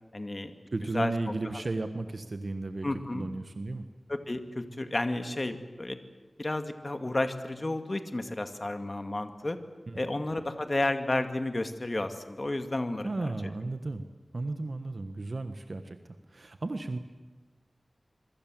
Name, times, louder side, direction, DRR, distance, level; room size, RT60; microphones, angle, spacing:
voice 1, 0.1-0.5 0.9-1.1 1.5-1.6 2.8-3.3 4.1-6.0 6.4-9.6 9.9-13.3, left 2 dB, 40° left, 7 dB, 2.2 m, -32 dB
voice 2, 0.7-3.8 9.9-10.1 13.0-14.0 14.3-16.0 16.3-17.0, right 2 dB, 60° right, 8 dB, 1.4 m, -34 dB
26.5 x 23.5 x 7.7 m, 1.2 s
wide cardioid pair, 70°, 0 cm